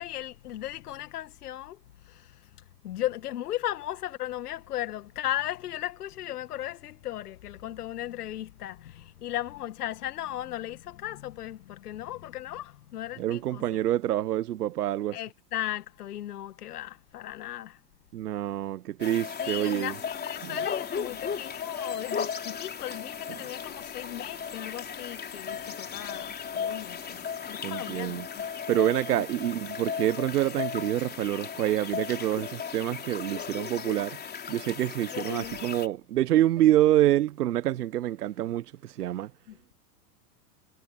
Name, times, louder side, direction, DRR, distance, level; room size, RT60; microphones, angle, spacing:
voice 1, 0.0-2.5 2.8-13.6 15.1-17.8 19.4-28.2 29.1-29.3 35.1-35.6 39.5-39.6, left 13 dB, 70° left, 1.9 m, -36 dB
voice 2, 13.2-15.2 18.1-19.9 20.4-20.5 27.6-28.3 28.7-34.2 34.5-39.3, right 13 dB, 70° right, 1.3 m, -27 dB
sound 1, 19.0-35.9, left 7 dB, 20° left, 3.7 m, -36 dB
hypercardioid pair, 100°, 47 cm